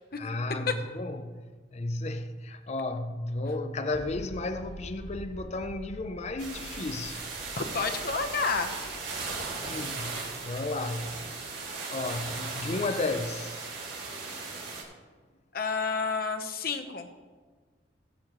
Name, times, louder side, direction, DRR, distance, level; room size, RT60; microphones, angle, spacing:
voice 1, 0.2-7.3 9.7-11.4 11.9-13.7, left 2 dB, 35° left, 0.5 m, -33 dB
sound 1, 3.9-11.4, left 1 dB, 10° left, 1.5 m, -47 dB
sound 2, 6.4-14.8, right 4 dB, 70° right, 3.3 m, -37 dB
voice 2, 7.6-8.8 15.5-17.1, left 4 dB, 55° left, 1.0 m, -30 dB
17.0 x 8.2 x 3.1 m
head